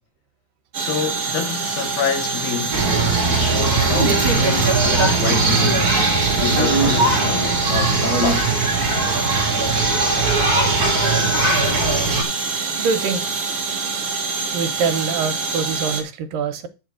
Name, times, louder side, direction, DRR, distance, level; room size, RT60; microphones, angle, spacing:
sound 1, 0.7-16.0, right 4 dB, 45° right, 2.6 m, -26 dB
voice 1, 0.8-2.8 3.2-5.9 6.4-8.6, left 7 dB, 80° left, 3.4 m, -27 dB
sound 2, 2.7-12.2, right 3 dB, 30° right, 2.7 m, -19 dB
voice 2, 12.8-13.3 14.5-16.7, right 5 dB, 75° right, 2.7 m, -24 dB
10.5 x 3.6 x 6.4 m
omnidirectional pair, 4.2 m